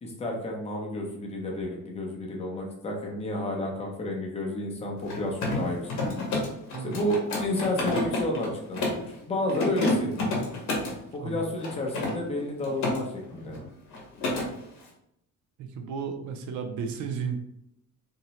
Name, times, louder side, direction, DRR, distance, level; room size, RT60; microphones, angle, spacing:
voice 1, 0.0-5.8 6.8-10.3 11.1-13.5, left 1 dB, 20° left, -1 dB, 0.5 m, -31 dB
Mechanisms, 5.0-9.1 9.5-11.0 11.6-13.0 13.3-13.6 13.9-14.5, left 2 dB, 65° left, 0.8 m, -29 dB
voice 2, 15.6-17.4, right 6 dB, 70° right, 6 dB, 0.5 m, -33 dB
2.6 x 2.0 x 2.9 m, 0.78 s
cardioid pair, 165°, 31 cm